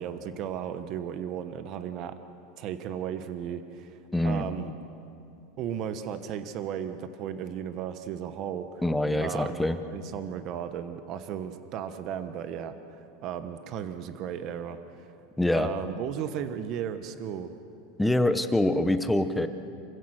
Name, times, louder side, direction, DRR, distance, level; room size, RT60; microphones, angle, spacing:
voice 1, 0.0-2.2 2.6-4.0 4.2-4.7 5.6-8.7 9.2-9.6 9.9-12.8 13.2-15.1 15.6-17.5, right 9 dB, 40° right, 10 dB, 1.1 m, -35 dB
voice 2, 4.1-4.4 8.8-9.8 15.4-15.7 18.0-19.5, left 1 dB, 5° left, 9 dB, 0.8 m, -25 dB
27.5 x 16.0 x 6.5 m, 2.6 s
supercardioid pair, 145°, 0 cm